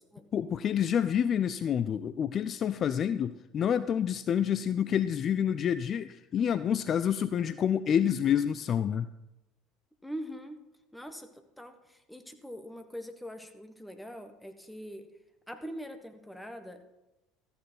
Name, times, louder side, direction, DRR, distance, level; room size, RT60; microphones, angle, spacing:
voice 1, 0.3-9.1, left 8 dB, 40° left, 14 dB, 0.3 m, -28 dB
voice 2, 10.0-10.6 10.9-15.1 15.5-16.9, equal, 5° left, 7 dB, 1.3 m, -43 dB
13.5 x 6.9 x 5.8 m, 0.98 s
figure-of-eight pair, 65°, 0 cm